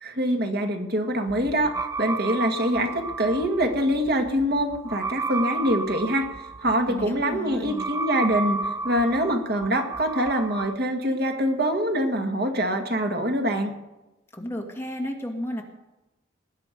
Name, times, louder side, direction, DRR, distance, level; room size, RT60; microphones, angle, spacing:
voice 1, 0.0-6.3 6.6-8.6 8.8-13.7, equal, 55° right, 4 dB, 1.8 m, -24 dB
sound 1, 1.3-10.7, right 3 dB, 15° right, 0.4 m, -32 dB
voice 2, 6.9-7.9 14.3-15.6, equal, 15° left, 1 dB, 1.9 m, -33 dB
20.0 x 10.5 x 5.2 m, 0.99 s
head